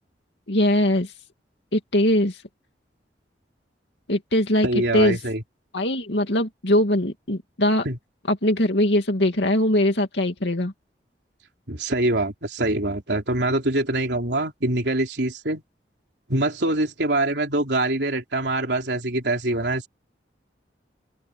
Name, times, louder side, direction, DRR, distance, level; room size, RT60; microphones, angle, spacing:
voice 1, 0.5-1.1 1.7-2.4 4.1-4.7 4.9-5.2 5.7-7.9 8.3-10.7, left 1 dB, 80° left, 2.5 m, -21 dB
voice 2, 4.6-5.4 7.9-8.0 11.7-15.6 16.3-19.9, right 2 dB, 75° right, 3.6 m, -24 dB
open air
head